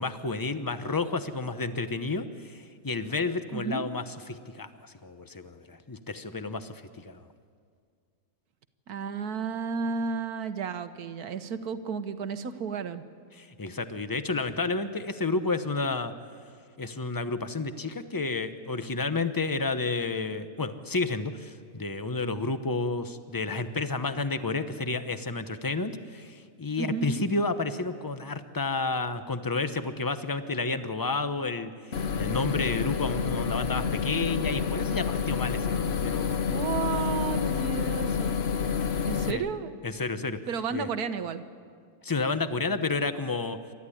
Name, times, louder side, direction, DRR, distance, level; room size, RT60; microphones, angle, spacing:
voice 1, 0.0-7.2 13.4-16.1 16.8-36.4 39.3-39.4 39.8-40.4 40.7-40.9 42.0-43.6, left 3 dB, 20° left, 10 dB, 0.7 m, -31 dB
voice 2, 3.5-3.9 8.9-13.0 26.8-27.3 36.2-38.4 39.1-39.7 40.5-41.4, right 5 dB, 75° right, 10 dB, 1.5 m, -32 dB
sound 1, 31.9-39.3, left 6 dB, 50° left, 0.9 m, -28 dB
28.0 x 13.5 x 9.9 m, 2.1 s
omnidirectional pair, 1.6 m